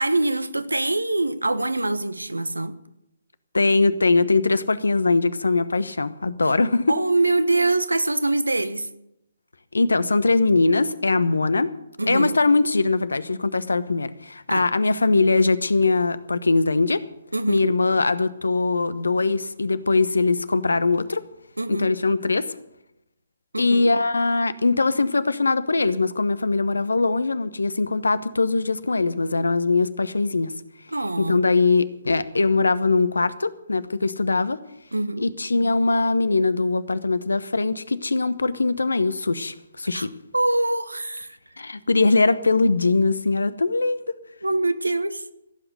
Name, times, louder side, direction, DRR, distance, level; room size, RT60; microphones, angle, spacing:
voice 1, 0.0-2.8 6.4-6.5 6.9-8.9 12.0-12.4 14.5-14.7 17.3-17.7 21.6-21.9 23.5-23.9 30.9-31.4 34.9-35.3 39.9-41.4 44.4-45.3, right 2 dB, 85° right, 14 dB, 1.1 m, -24 dB
voice 2, 3.5-6.9 9.7-11.7 12.1-17.0 17.5-21.2 21.7-22.5 23.6-30.5 31.2-34.6 35.2-40.1 41.6-44.0, left 3 dB, 75° left, 15 dB, 1.0 m, -21 dB
16.0 x 8.0 x 9.3 m, 0.87 s
figure-of-eight pair, 135°, 0 cm